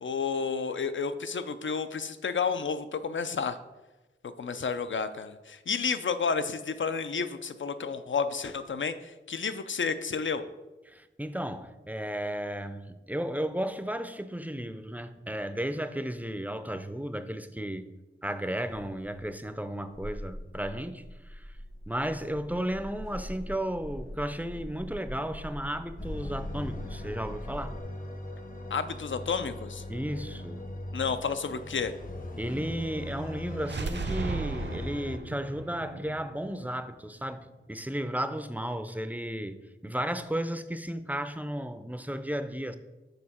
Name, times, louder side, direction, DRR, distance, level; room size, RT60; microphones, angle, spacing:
voice 1, 0.0-3.6 4.4-10.4 28.7-29.8 30.9-31.9, left 5 dB, 70° left, 0.5 m, -31 dB
voice 2, 10.9-17.9 18.2-21.5 21.9-27.7 29.9-30.6 32.4-42.8, right 1 dB, 10° right, 0.4 m, -34 dB
sound 1, 18.7-27.8, equal, 85° left, 2.3 m, -42 dB
sound 2, 26.0-35.2, left 2 dB, 45° left, 0.8 m, -40 dB
sound 3, 33.6-37.4, right 3 dB, 60° right, 0.6 m, -36 dB
6.7 x 4.5 x 4.3 m
wide cardioid pair, 50°, 20 cm